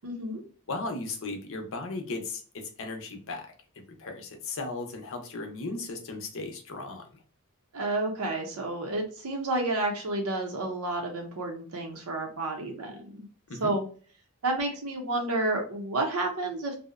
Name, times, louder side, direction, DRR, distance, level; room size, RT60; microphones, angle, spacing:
voice 1, 0.0-0.4 7.7-13.2 13.6-13.8 14.4-16.7, right 2 dB, 80° right, 2 dB, 0.6 m, -30 dB
voice 2, 0.7-2.4 2.8-3.5 3.8-7.0 13.5-13.7, left 3 dB, 60° left, 4 dB, 0.6 m, -36 dB
2.6 x 2.0 x 2.4 m, 0.40 s
head